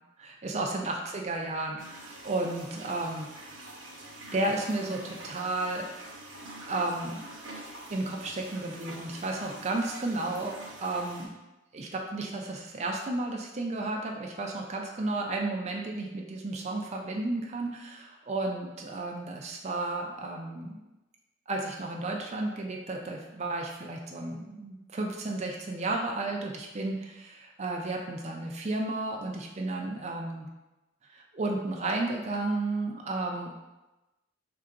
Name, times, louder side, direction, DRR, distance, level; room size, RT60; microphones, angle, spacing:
voice 1, 0.2-3.6 4.3-5.9 6.7-7.2 7.9-11.3 11.7-20.8 21.5-30.5 31.1-33.5, right 2 dB, 35° right, 0 dB, 0.4 m, -33 dB
sound 1, 1.8-11.3, right 1 dB, 60° right, 0.9 m, -45 dB
3.7 x 2.5 x 4.4 m, 1.0 s
head